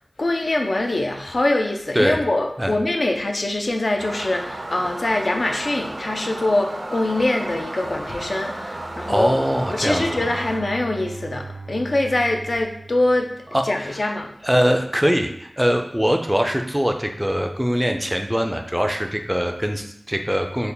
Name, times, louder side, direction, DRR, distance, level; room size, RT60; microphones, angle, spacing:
voice 1, 0.2-9.4 9.7-13.3 13.6-14.3, left 2 dB, 70° left, 2 dB, 0.4 m, -23 dB
sound 1, 4.0-10.6, right 1 dB, 65° right, 0.5 m, -33 dB
voice 2, 9.1-10.2 13.5-13.7 14.4-20.7, equal, 10° right, 4 dB, 0.3 m, -22 dB
Bowed string instrument, 9.6-13.9, right 3 dB, 85° right, 0.8 m, -39 dB
3.4 x 2.1 x 3.7 m, 0.72 s
wide cardioid pair, 50°, 0 cm